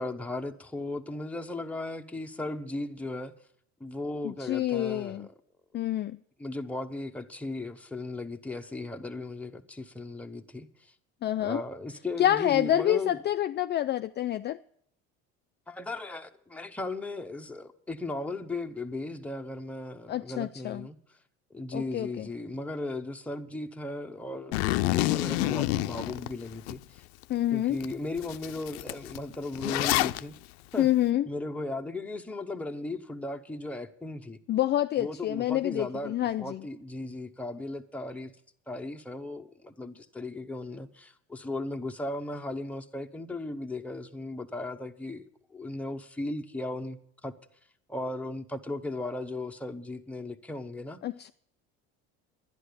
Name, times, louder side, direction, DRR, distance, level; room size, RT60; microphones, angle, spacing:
voice 1, 0.0-3.3 3.8-5.3 6.4-10.9 11.4-13.2 15.7-21.0 21.5-27.0 27.5-30.3 30.7-30.9 31.3-34.4 35.0-38.3 38.7-47.3 47.9-51.0, left 2 dB, 5° left, 1.0 m, -36 dB
voice 2, 4.2-5.3 5.7-6.2 11.2-11.6 12.2-14.6 20.1-20.9 21.7-22.3 27.3-27.8 30.8-31.3 34.5-36.6 51.0-51.3, left 12 dB, 35° left, 0.4 m, -27 dB
Zipper (clothing), 24.5-26.7 27.2-27.3 27.8-27.9 28.2-30.2, left 18 dB, 90° left, 0.5 m, -28 dB
11.0 x 10.5 x 6.7 m
supercardioid pair, 100°, 31 cm